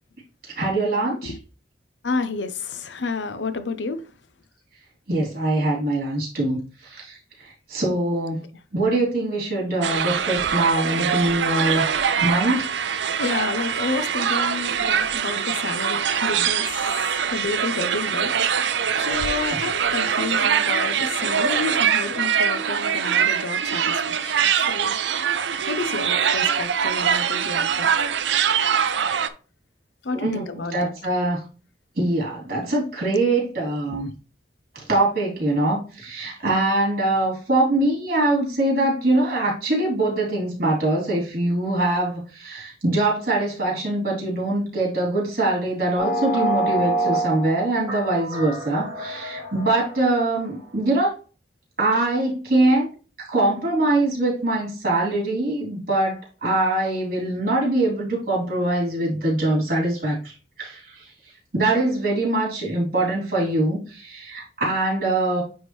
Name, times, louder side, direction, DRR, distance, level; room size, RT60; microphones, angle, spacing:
voice 1, 0.6-1.3 5.1-7.2 7.4-8.4 8.7-11.9 12.2-12.7 16.3-16.4 19.5-19.6 30.1-30.5 30.7-31.4 32.0-34.1 34.8-51.1 51.8-52.9 53.2-60.2 60.6-60.9 61.5-65.4, right 2 dB, 55° right, 3.5 m, -23 dB
voice 2, 2.0-4.0 13.2-16.9 17.3-18.3 18.7-25.0 25.7-27.9 30.0-30.9 33.9-34.0, left 4 dB, 90° left, 0.7 m, -30 dB
sound 1, 9.8-29.3, right 7 dB, 85° right, 0.5 m, -23 dB
sound 2, 46.0-50.5, right 2 dB, 15° right, 2.3 m, -27 dB
9.3 x 3.6 x 3.1 m
head